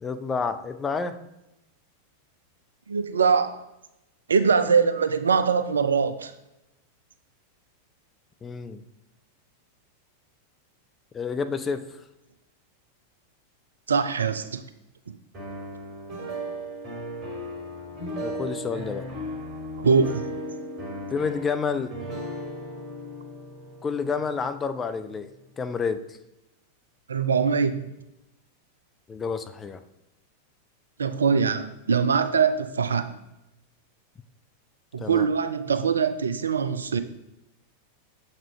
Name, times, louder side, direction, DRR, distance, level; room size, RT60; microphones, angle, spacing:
voice 1, 0.0-1.2 8.4-8.8 11.1-11.9 18.2-19.1 21.1-22.0 23.8-25.3 25.6-26.2 29.1-29.8 35.0-35.3, left 5 dB, 20° left, 0.4 m, -29 dB
voice 2, 2.9-3.6 4.3-6.3 13.9-14.6 19.8-20.3 27.1-27.9 31.0-33.1 34.9-37.0, right 5 dB, 70° right, 0.4 m, -23 dB
sound 1, 15.3-25.3, equal, 30° right, 1.8 m, -36 dB
7.2 x 5.1 x 3.2 m
figure-of-eight pair, 90°, 0 cm